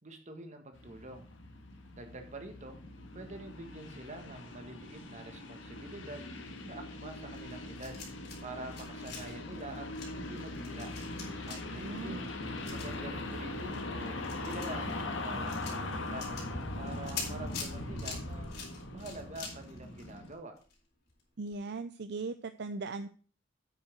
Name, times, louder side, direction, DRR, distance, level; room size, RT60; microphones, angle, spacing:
voice 1, 0.0-1.3 1.9-2.8 3.1-6.3 6.6-8.0 8.4-9.9 10.1-10.9 11.5-12.3 12.7-16.3 16.8-18.5 18.9-20.5, right 2 dB, 40° right, 5 dB, 1.6 m, -46 dB
sound 1, 0.7-20.3, left 2 dB, 90° left, 1.6 m, -41 dB
sound 2, 7.3-8.4 8.7-20.8 21.1-21.2 21.5-21.6, left 5 dB, 55° left, 4.2 m, -46 dB
voice 2, 11.7-12.2 21.4-23.1, right 3 dB, 60° right, 10 dB, 0.5 m, -39 dB
8.8 x 5.8 x 5.9 m, 0.40 s
head